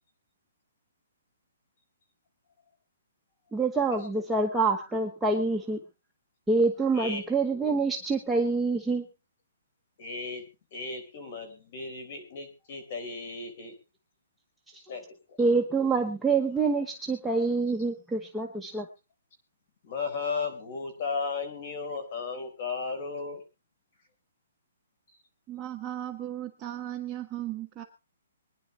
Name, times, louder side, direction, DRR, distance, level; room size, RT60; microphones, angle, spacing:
voice 1, 3.5-5.8 6.5-9.0 14.7-14.8 15.4-18.9, right 3 dB, 5° right, 0 dB, 1.0 m, -26 dB
voice 2, 10.0-10.4 10.7-13.7 14.9-15.0 15.3-15.4 19.8-23.4, left 4 dB, 40° left, 7 dB, 4.2 m, -35 dB
voice 3, 25.5-27.8, right 12 dB, 20° right, 3 dB, 1.4 m, -36 dB
24.5 x 10.5 x 3.2 m, 0.29 s
hypercardioid pair, 165°, 0 cm